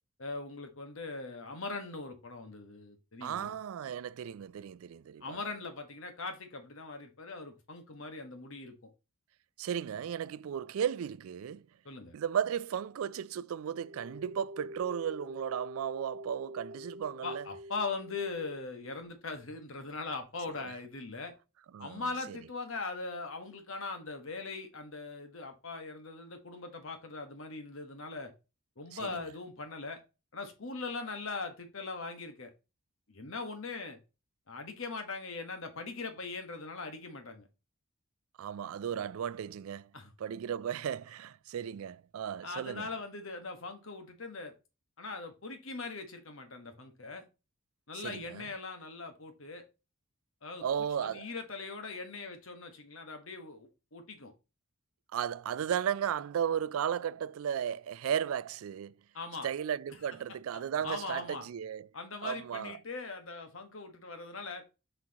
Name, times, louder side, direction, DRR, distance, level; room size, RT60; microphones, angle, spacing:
voice 1, 0.2-3.5 5.2-8.9 11.8-12.1 17.2-21.3 21.8-28.3 28.8-30.0 30.3-32.5 33.1-34.0 34.5-37.5 39.9-40.1 42.4-44.5 45.0-47.2 47.9-49.7 50.4-50.6 51.0-54.3 59.1-59.5 60.5-61.5 61.9-64.6, left 3 dB, 70° left, 1.4 m, -41 dB
voice 2, 3.2-5.4 9.6-11.7 12.1-17.4 20.6-20.7 21.7-22.4 29.0-29.1 38.4-39.9 40.2-42.9 47.9-48.4 50.6-51.3 55.1-58.9 59.4-61.9 62.2-62.8, right 8 dB, 75° right, 0.3 m, -35 dB
sound 1, 13.7-18.6, equal, 35° right, 0.7 m, -46 dB
6.0 x 5.8 x 2.9 m
head